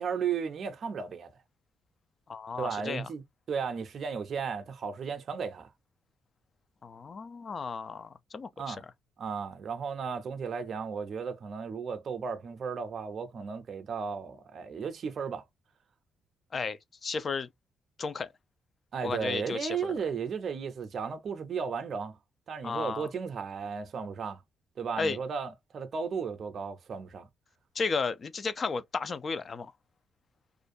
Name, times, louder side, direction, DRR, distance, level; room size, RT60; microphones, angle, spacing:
voice 1, 0.0-1.3 2.6-5.7 8.6-8.8 9.2-15.4 18.9-22.2 22.5-24.4 24.8-27.3, right 6 dB, 55° right, 0.5 m, -35 dB
voice 2, 2.3-3.1 6.8-8.8 16.5-17.5 18.0-18.3 19.0-19.9 22.6-23.1 25.0-25.2 27.8-29.7, left 4 dB, 40° left, 0.4 m, -33 dB
2.5 x 2.2 x 2.6 m
cardioid pair, 90°, 0 cm